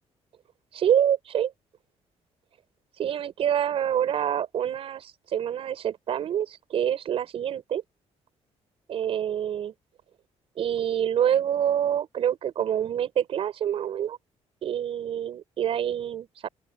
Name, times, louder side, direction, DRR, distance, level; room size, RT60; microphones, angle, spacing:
voice 1, 0.7-1.5 3.0-7.8 8.9-9.7 10.6-14.2 14.6-16.5, right 9 dB, 55° right, 5.4 m, -26 dB
open air
cardioid pair, 155°, 12 cm